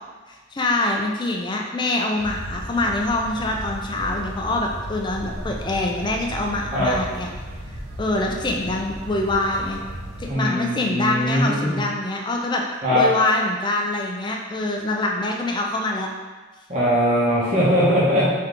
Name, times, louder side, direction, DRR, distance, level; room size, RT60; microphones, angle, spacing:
voice 1, 0.3-7.3 8.0-9.8 10.2-12.6 12.9-16.1, left 2 dB, 20° left, 1 dB, 0.4 m, -24 dB
sound 1, 2.2-10.3, right 1 dB, 85° right, 0.7 m, -35 dB
voice 2, 10.3-11.8 12.8-13.0 16.7-18.3, equal, 40° right, -9 dB, 1.0 m, -20 dB
3.3 x 2.9 x 3.7 m, 1.3 s
head